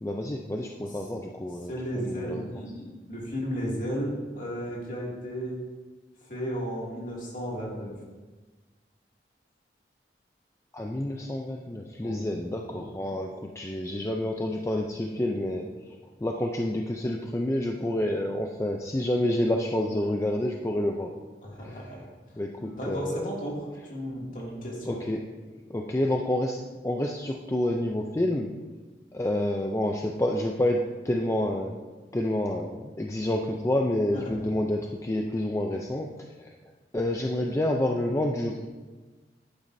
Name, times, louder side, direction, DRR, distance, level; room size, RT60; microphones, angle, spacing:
voice 1, 0.0-2.4 10.7-15.7 16.2-21.1 21.6-21.8 22.4-23.3 24.9-25.2 25.7-28.5 29.1-31.8 32.1-36.1 36.4-36.5 36.9-38.7, left 1 dB, 15° left, 1 dB, 0.4 m, -28 dB
voice 2, 1.7-5.6 6.3-7.9 12.0-12.3 12.7-12.8 21.4-22.0 22.6-25.0 34.1-34.3, equal, 45° left, -4 dB, 2.4 m, -34 dB
10.5 x 9.3 x 2.7 m, 1.3 s
head